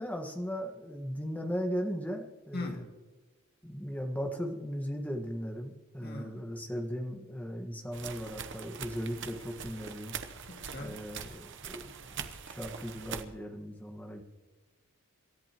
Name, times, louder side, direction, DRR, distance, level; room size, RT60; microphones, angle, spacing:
voice 1, 0.0-2.8 3.6-10.1 10.8-11.9 12.5-14.2, equal, 5° left, 3 dB, 1.5 m, -37 dB
voice 2, 2.5-2.9 6.0-6.5 10.5-11.0, left 2 dB, 45° left, 2 dB, 2.2 m, -40 dB
sound 1, 7.9-13.2, right 6 dB, 55° right, 1.0 m, -43 dB
27.0 x 14.0 x 3.0 m, 1.3 s
head